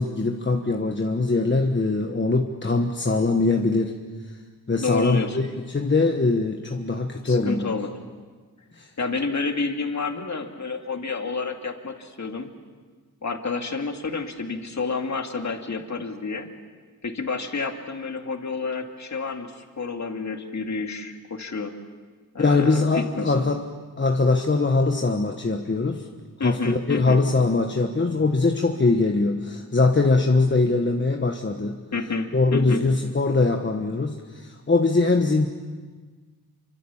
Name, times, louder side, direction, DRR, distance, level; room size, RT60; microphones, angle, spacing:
voice 1, 0.0-3.9 4.7-5.5 5.7-7.6 8.8-8.9 22.4-23.7 24.0-26.1 26.4-31.8 32.3-35.5, left 3 dB, 30° left, 3 dB, 1.4 m, -22 dB
voice 2, 4.8-5.4 7.2-7.9 9.0-12.5 13.2-16.5 17.0-21.7 22.3-23.3 26.4-27.2 31.9-32.8, left 4 dB, 50° left, 4 dB, 2.5 m, -29 dB
28.5 x 25.0 x 7.3 m, 1.4 s
wide cardioid pair, 120°, 36 cm